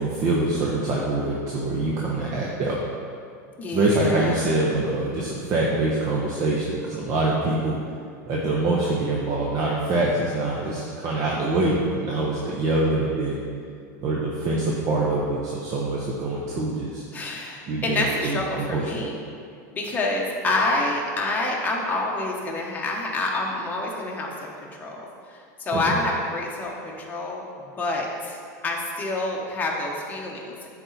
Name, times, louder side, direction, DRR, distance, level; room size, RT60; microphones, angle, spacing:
voice 1, 0.0-2.8 3.7-7.8 8.3-13.4 14.0-17.0 17.7-19.1 25.9-26.0, right 2 dB, 40° right, -3 dB, 1.0 m, -24 dB
voice 2, 3.6-4.4 17.1-19.1 19.7-30.7, left 2 dB, 15° left, -2 dB, 1.2 m, -28 dB
10.0 x 4.3 x 4.1 m, 2.4 s
supercardioid pair, 135°, 10 cm